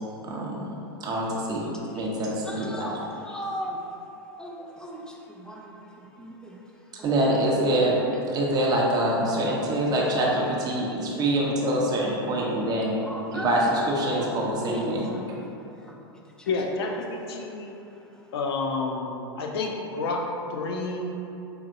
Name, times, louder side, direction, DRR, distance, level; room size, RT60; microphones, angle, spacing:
voice 1, 0.2-0.7 1.0-1.7 1.9-2.9 7.0-8.0 8.3-12.9 13.3-15.1, right 1 dB, 30° right, -3 dB, 0.8 m, -25 dB
voice 2, 1.9-3.9 4.4-7.3 10.4-10.5 13.1-13.5 14.1-14.3 14.6-16.5 16.9-17.0 17.4-18.3, equal, 5° left, -1 dB, 0.4 m, -39 dB
voice 3, 16.5-17.7 18.3-20.2 20.5-21.1, left 3 dB, 70° left, 0 dB, 0.5 m, -29 dB
4.4 x 2.7 x 2.6 m, 2.8 s
hypercardioid pair, 100°, 13 cm